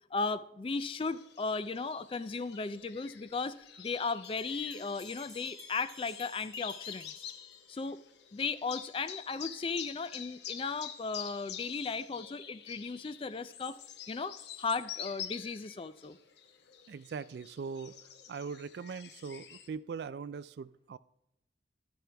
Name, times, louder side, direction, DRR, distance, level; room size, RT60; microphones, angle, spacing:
voice 1, 0.1-7.2 7.7-8.0 8.3-13.8 14.1-16.2, left 4 dB, 30° left, 14 dB, 0.3 m, -36 dB
sound 1, 0.8-19.7, left 9 dB, 70° left, 0.9 m, -47 dB
Bell, 4.2-8.0, equal, 15° right, 1.3 m, -55 dB
voice 2, 16.9-18.0 18.3-21.0, right 5 dB, 60° right, 16 dB, 0.3 m, -41 dB
12.0 x 10.5 x 3.4 m, 0.82 s
head